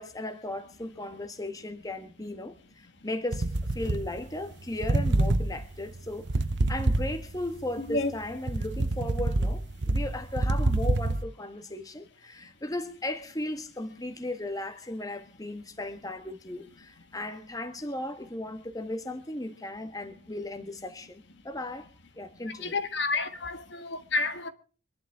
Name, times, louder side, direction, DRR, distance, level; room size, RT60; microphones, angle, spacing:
voice 1, 0.0-6.3 6.7-21.9 22.1-22.8, left 1 dB, 20° left, 1.5 m, -36 dB
sound 1, 3.3-4.5 4.8-7.5 8.0-11.2, right 2 dB, 60° right, 0.9 m, -27 dB
voice 2, 7.8-8.1 22.4-24.5, left 3 dB, 60° left, 1.5 m, -30 dB
25.0 x 11.5 x 3.6 m
head